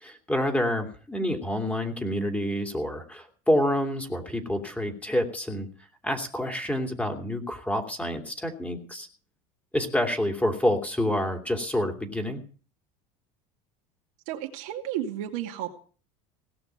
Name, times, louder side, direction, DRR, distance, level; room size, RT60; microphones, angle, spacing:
voice 1, 0.0-5.7 6.0-9.1 9.7-12.4, left 1 dB, 10° left, 4 dB, 2.8 m, -28 dB
voice 2, 14.3-15.7, right 11 dB, 75° right, 2 dB, 2.4 m, -32 dB
17.5 x 6.0 x 9.2 m, 0.41 s
supercardioid pair, 100°, 18 cm